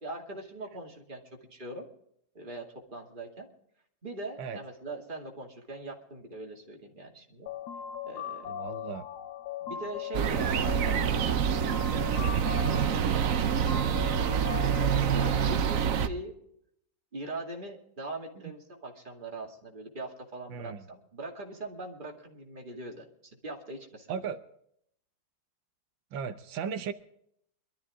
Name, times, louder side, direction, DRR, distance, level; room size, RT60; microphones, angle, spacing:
voice 1, 0.0-1.9 2.3-3.5 4.0-7.5 8.1-8.5 9.6-11.3 11.9-13.0 14.6-16.3 17.1-23.0 23.4-24.2, right 2 dB, 25° right, 0 dB, 2.5 m, -41 dB
sound 1, 7.5-15.5, left 9 dB, 65° left, 1.3 m, -40 dB
voice 2, 8.5-9.0 20.5-20.8 24.1-24.4 26.1-26.9, right 7 dB, 85° right, 9 dB, 1.6 m, -36 dB
sound 2, 10.1-16.1, right 8 dB, 55° right, 1.0 m, -26 dB
23.0 x 13.0 x 3.6 m, 0.72 s
omnidirectional pair, 2.0 m